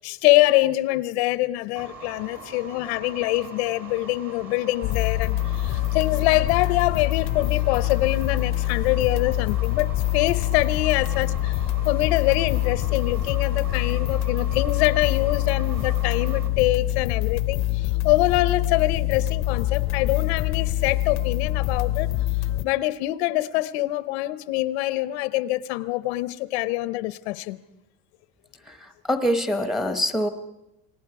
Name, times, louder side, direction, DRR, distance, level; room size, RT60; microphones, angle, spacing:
voice 1, 0.0-11.6 11.8-22.1 22.6-27.6, left 18 dB, 85° left, 0.9 m, -24 dB
sound 1, 1.8-16.5, right 3 dB, 30° right, 1.7 m, -42 dB
sound 2, 4.8-22.6, left 15 dB, 40° left, 0.7 m, -25 dB
voice 2, 28.7-30.3, equal, ahead, 0.9 m, -25 dB
29.0 x 20.0 x 4.8 m
cardioid pair, 170°, 32 cm